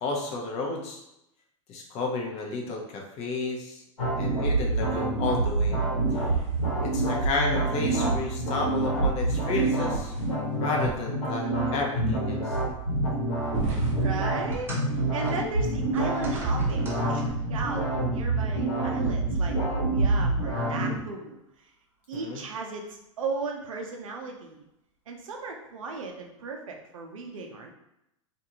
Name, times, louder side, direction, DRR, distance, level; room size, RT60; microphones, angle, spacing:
voice 1, 0.0-1.0 1.7-3.8 4.2-5.8 6.1-6.2 6.8-10.1 10.5-12.6 22.1-22.4, left 3 dB, 40° left, 0 dB, 0.8 m, -31 dB
sound 1, 4.0-21.0, right 2 dB, 90° left, 1.1 m, -27 dB
sound 2, 6.1-7.4 9.2-10.7 11.4-11.5 12.2-12.3 13.4-14.2, right 4 dB, 40° right, 0.7 m, -38 dB
voice 2, 14.0-21.7 22.1-24.6 25.1-27.7, right 3 dB, 80° right, 2 dB, 0.6 m, -36 dB
sound 3, 14.5-17.6 18.6-18.7 19.6-19.7, right 3 dB, 15° right, 0.9 m, -41 dB
2.5 x 2.4 x 2.9 m, 0.83 s
hypercardioid pair, 100°, 17 cm